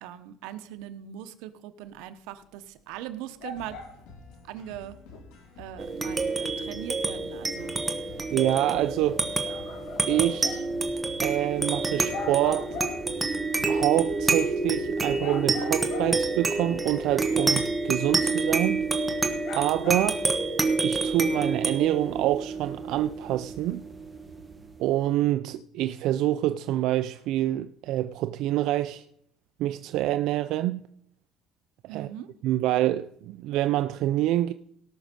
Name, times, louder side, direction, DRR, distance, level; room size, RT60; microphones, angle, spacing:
voice 1, 0.0-3.8 4.4-5.0 5.6-7.7 31.9-32.3, right 11 dB, 85° right, 1.0 m, -40 dB
sound 1, 2.3-2.4 2.9-3.0 3.4-4.2 4.6-4.7 5.1-5.2 5.8-5.9 6.4-6.5 7.0-7.1 7.6-7.7 8.2-8.9 9.2-10.7 11.1-11.2 11.8-11.9 12.1-13.2 13.8-13.9 14.5-14.7 15.2-16.4 16.9-17.0 17.7-17.8 18.3-18.4 19.1-19.2 19.4-20.6, left 4 dB, 65° left, 2.0 m, -40 dB
sound 2, 3.6-19.5, left 3 dB, 90° left, 3.8 m, -49 dB
sound 3, 5.8-24.6, right 3 dB, 15° right, 1.2 m, -28 dB
voice 2, 8.3-9.2 10.1-10.6 11.2-12.8 13.7-18.8 19.5-20.2 20.8-23.8 24.8-29.0 29.6-30.8 31.8-32.1 32.4-34.5, right 14 dB, 65° right, 0.4 m, -26 dB
18.0 x 6.3 x 5.2 m
cardioid pair, 155°, 0 cm